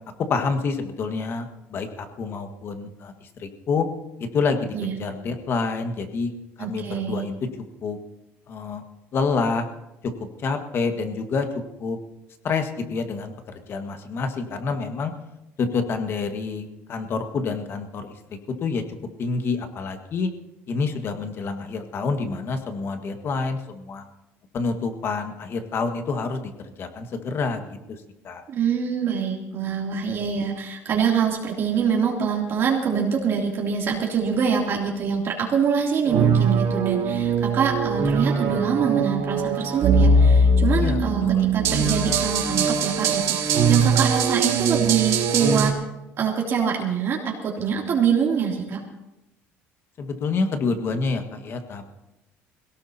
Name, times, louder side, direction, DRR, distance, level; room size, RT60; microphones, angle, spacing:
voice 1, 0.3-3.9 4.2-6.3 6.6-7.3 7.8-8.0 8.5-8.8 9.1-9.7 10.4-11.5 11.8-12.0 12.4-15.1 15.6-18.8 19.2-20.3 20.7-24.1 24.5-26.5 26.8-28.4 40.7-41.5 50.0-52.0, left 4 dB, 50° left, 6 dB, 1.7 m, -28 dB
voice 2, 6.6-7.3 28.5-45.7 46.2-48.8, right 6 dB, 50° right, -2 dB, 2.9 m, -25 dB
sound 1, 36.1-45.7, right 3 dB, 70° right, 2.3 m, -21 dB
21.5 x 17.5 x 2.9 m, 0.93 s
cardioid pair, 110°, 5 cm